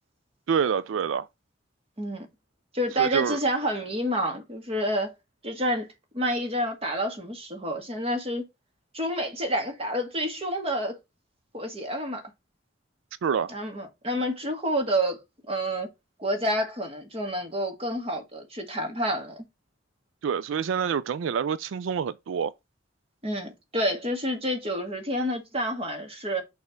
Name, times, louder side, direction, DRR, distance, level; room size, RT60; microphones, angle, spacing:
voice 1, 0.5-1.3 3.0-3.4 13.2-13.5 20.2-22.5, right 7 dB, 85° right, 0.4 m, -27 dB
voice 2, 2.0-2.3 2.7-5.1 5.4-5.9 6.1-8.5 8.9-11.0 11.5-12.2 13.5-15.2 15.5-15.9 16.2-19.4 23.2-26.4, equal, 30° right, 1.8 m, -28 dB
6.5 x 3.5 x 5.7 m
head